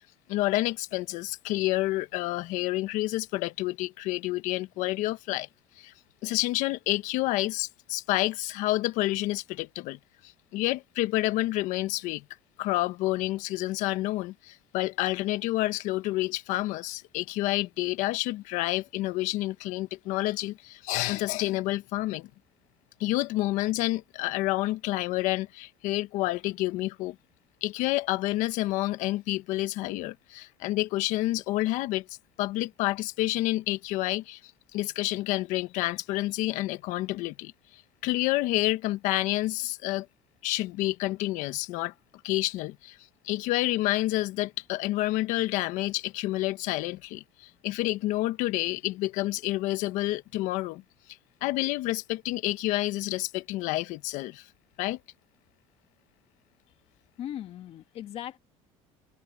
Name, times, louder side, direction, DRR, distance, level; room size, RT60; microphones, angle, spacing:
voice 1, 0.3-5.5 5.8-5.9 6.2-12.2 12.6-22.3 23.0-27.2 27.6-34.4 34.7-37.5 38.0-40.1 40.4-41.9 42.2-43.0 43.2-50.8 51.4-54.4 54.8-55.0, left 17 dB, 70° left, 1.3 m, -29 dB
voice 2, 57.2-58.4, left 11 dB, 45° left, 1.9 m, -38 dB
cardioid pair, 140°, 13 cm